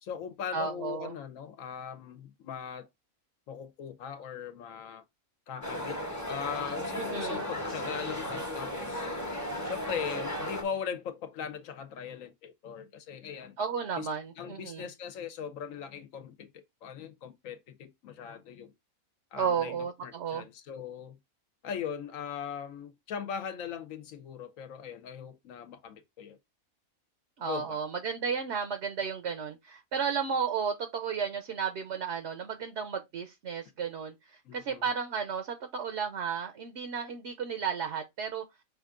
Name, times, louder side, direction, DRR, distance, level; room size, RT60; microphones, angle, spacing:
voice 1, 0.0-2.9 3.5-5.0 5.5-9.1 9.6-13.6 14.0-14.1 14.4-16.5 16.8-18.7 19.3-21.2 21.6-26.4 27.4-27.8 34.4-34.8, left 7 dB, 70° left, 1.1 m, -40 dB
voice 2, 0.5-1.2 6.9-7.4 13.6-14.9 19.3-20.5 27.4-38.4, right 6 dB, 60° right, 0.9 m, -33 dB
sound 1, 5.6-10.6, left 1 dB, 15° left, 0.8 m, -35 dB
5.8 x 2.5 x 3.6 m
omnidirectional pair, 1.5 m